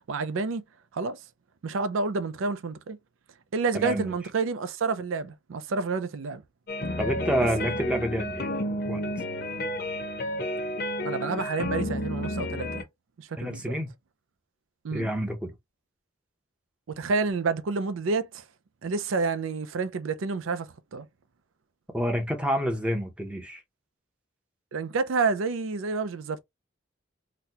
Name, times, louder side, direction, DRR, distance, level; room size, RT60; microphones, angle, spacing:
voice 1, 0.1-0.6 0.9-1.2 1.6-3.0 3.5-6.4 11.0-12.8 13.2-13.7 14.8-15.1 16.9-18.4 18.8-21.1 24.7-26.4, right 4 dB, 85° right, 0.5 m, -29 dB
voice 2, 3.7-4.1 7.0-8.5 8.9-9.0 13.4-13.9 14.9-15.5 21.9-23.6, equal, 5° right, 0.7 m, -28 dB
sound 1, 6.7-12.8, left 1 dB, 50° left, 0.7 m, -31 dB
4.0 x 2.1 x 2.8 m
head